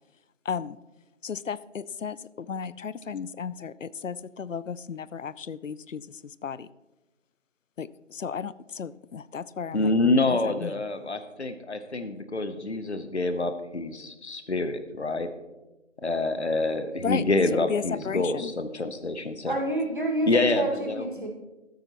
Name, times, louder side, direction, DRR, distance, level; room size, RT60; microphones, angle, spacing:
voice 1, 0.5-0.8 1.2-6.1 6.4-6.7 7.8-9.9 10.3-10.7 17.0-17.2 17.5-18.5, left 6 dB, 90° left, 19 dB, 0.5 m, -34 dB
voice 2, 9.7-15.3 16.0-19.6 20.3-21.3, left 2 dB, 60° left, 10 dB, 0.8 m, -27 dB
voice 3, 19.4-21.3, right 2 dB, 40° right, 0 dB, 1.8 m, -28 dB
13.0 x 9.2 x 2.9 m, 1.1 s
figure-of-eight pair, 175°, 37 cm